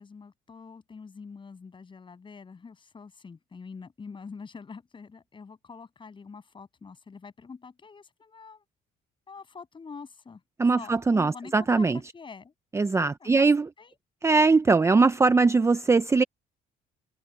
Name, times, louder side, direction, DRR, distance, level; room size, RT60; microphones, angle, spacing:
voice 1, 0.0-8.6 9.3-10.4 10.7-12.5 13.2-13.5 13.8-14.0, left 5 dB, 30° left, 7.9 m, -45 dB
voice 2, 10.6-12.0 12.7-13.7 14.2-16.2, right 4 dB, 15° right, 0.6 m, -21 dB
cardioid pair, 110°, 17 cm